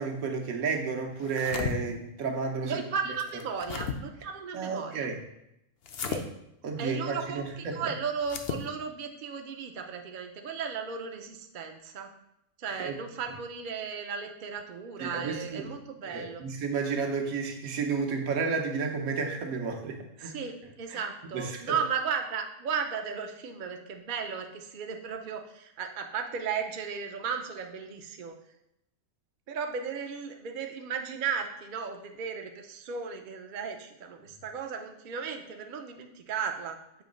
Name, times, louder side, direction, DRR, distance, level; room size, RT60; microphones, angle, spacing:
voice 1, 0.0-2.8 4.5-5.2 6.6-7.9 12.7-12.9 15.0-15.7 16.0-20.4 20.9-21.0 21.3-21.6, right 5 dB, 75° right, 2 dB, 1.3 m, -32 dB
sound 1, 1.2-1.7 3.2-4.0 5.8-6.2 8.2-8.6, left 6 dB, 60° left, 0.7 m, -34 dB
voice 2, 2.6-5.1 6.0-6.3 6.8-12.1 12.6-16.4 20.2-28.4 29.5-36.8, right 6 dB, 50° right, 4 dB, 0.6 m, -35 dB
7.7 x 3.0 x 5.1 m, 0.83 s
omnidirectional pair, 1.5 m